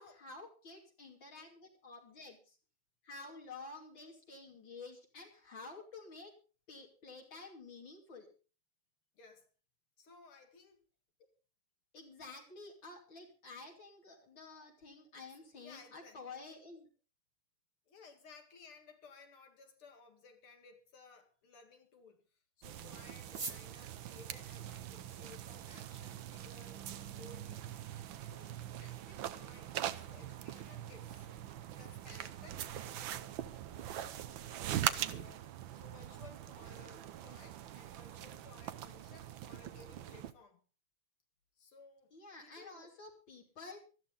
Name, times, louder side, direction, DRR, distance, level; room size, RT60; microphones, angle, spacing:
voice 1, 0.0-2.6 3.0-6.3 6.7-8.3 11.9-16.9 42.1-43.9, left 3 dB, 65° left, 3.7 m, -51 dB
voice 2, 9.1-9.5 10.0-10.8 15.2-15.3 15.5-16.2 17.9-22.2 22.6-27.8 28.2-31.3 31.8-33.2 33.7-34.3 34.8-40.6 41.6-42.1 42.4-42.9, left 4 dB, 90° left, 3.1 m, -59 dB
sound 1, 22.6-40.3, right 11 dB, 70° right, 1.6 m, -42 dB
sound 2, 23.2-38.0, right 4 dB, 45° right, 0.4 m, -56 dB
19.0 x 13.5 x 3.8 m
omnidirectional pair, 2.3 m